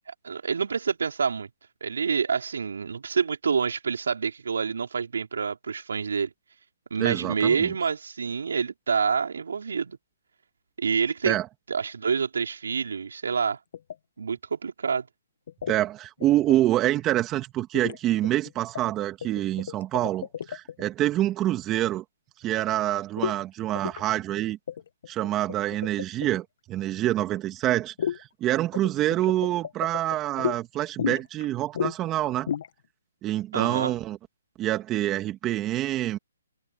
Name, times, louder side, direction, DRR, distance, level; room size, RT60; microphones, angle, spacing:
voice 1, 0.2-1.5 1.8-6.3 6.9-10.0 10.8-11.4 11.7-13.6 14.2-15.1 33.5-33.9, right 6 dB, 75° right, 4.6 m, -27 dB
voice 2, 7.0-7.7 11.2-11.5 15.7-22.0 22.4-24.6 25.1-32.5 33.2-34.2 34.6-36.2, right 14 dB, 15° right, 2.7 m, -26 dB
sound 1, 13.7-13.9 15.5-15.8 16.2-16.5 17.7-18.0 18.2-18.9 19.2-20.8 23.2-23.4 23.8-24.0 24.4-24.5 24.7-26.4 28.0-28.2 28.7-30.6 31.0-31.5 31.7-32.0 32.3-32.7, left 8 dB, 55° left, 1.5 m, -32 dB
hypercardioid pair, 155°, 0 cm